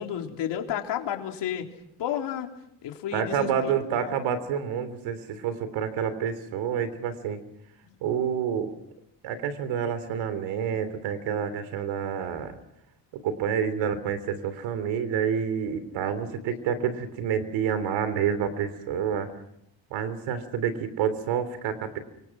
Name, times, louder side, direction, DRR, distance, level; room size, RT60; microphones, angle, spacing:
voice 1, 0.0-1.7 2.0-2.5 2.8-4.2 7.8-7.9, left 9 dB, 65° left, 3 dB, 3.7 m, -32 dB
voice 2, 3.1-7.4 8.0-8.8 9.2-12.6 13.1-19.3 19.9-22.0, right 8 dB, 85° right, 12 dB, 3.4 m, -28 dB
29.0 x 25.0 x 6.1 m, 0.79 s
cardioid pair, 130°, 45 cm